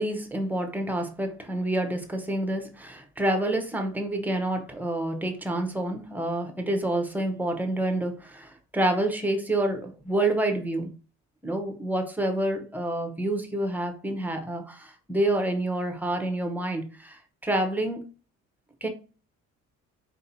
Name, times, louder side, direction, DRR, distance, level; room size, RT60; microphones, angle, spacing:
voice 1, 0.0-10.9 11.4-18.1 18.8-18.9, right 1 dB, 5° right, 4 dB, 0.7 m, -28 dB
4.5 x 2.7 x 4.1 m, 0.36 s
cardioid pair, 140°, 30 cm